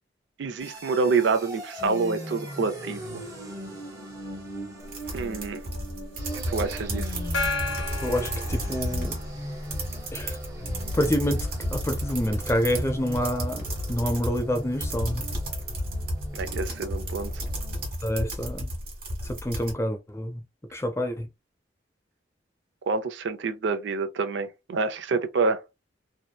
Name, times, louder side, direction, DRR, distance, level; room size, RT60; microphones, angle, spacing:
voice 1, 0.4-3.2 5.1-5.6 6.5-7.1 16.3-17.3 22.9-25.6, right 4 dB, 70° right, 0.4 m, -27 dB
sound 1, 0.6-17.9, equal, 20° right, 0.9 m, -40 dB
sound 2, 4.8-9.3 9.5-19.7, equal, 50° right, 1.1 m, -32 dB
Gong, 7.3-9.4, left 3 dB, 90° left, 0.8 m, -32 dB
voice 2, 8.0-9.1 10.1-10.4 10.9-15.2 18.0-18.7 19.2-20.4 20.7-21.3, equal, 15° left, 0.4 m, -27 dB
2.8 x 2.1 x 2.2 m
head